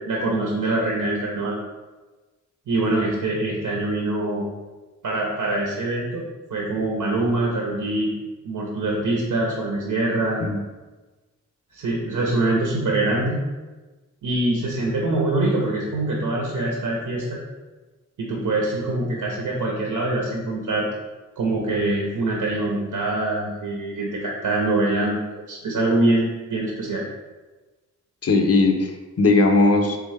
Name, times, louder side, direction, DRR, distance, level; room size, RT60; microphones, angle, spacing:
voice 1, 0.0-1.6 2.7-4.5 5.0-6.2 6.5-8.1 8.4-10.4 11.7-13.4 14.2-17.4 18.2-20.9 21.4-25.2 25.5-27.0, right 2 dB, 75° right, -2 dB, 0.8 m, -24 dB
voice 2, 28.2-30.0, left 3 dB, 50° left, 4 dB, 0.6 m, -18 dB
3.6 x 3.4 x 3.3 m, 1.2 s
cardioid pair, 65°, 32 cm